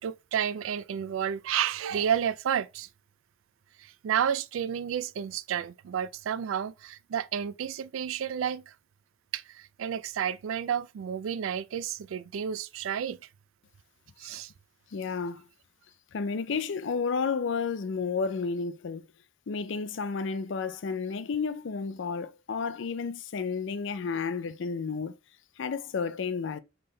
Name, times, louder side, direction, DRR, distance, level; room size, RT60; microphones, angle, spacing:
voice 1, 0.0-2.9 3.8-8.7 9.3-13.2 14.2-14.5, right 8 dB, 85° right, 0.3 m, -31 dB
voice 2, 14.9-15.5 16.1-19.1 19.5-25.2 25.6-26.6, left 5 dB, 65° left, 0.5 m, -31 dB
3.8 x 3.3 x 3.9 m
head